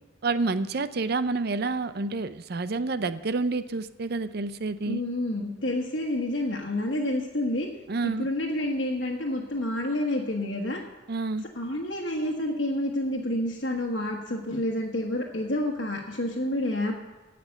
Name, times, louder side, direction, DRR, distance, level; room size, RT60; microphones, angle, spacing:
voice 1, 0.2-5.0 7.9-8.3 11.1-11.5, right 3 dB, 60° right, 13 dB, 0.6 m, -28 dB
voice 2, 4.8-7.7 8.0-10.8 11.5-17.0, left 1 dB, 65° left, -1 dB, 1.5 m, -29 dB
17.0 x 6.0 x 8.2 m, 1.2 s
head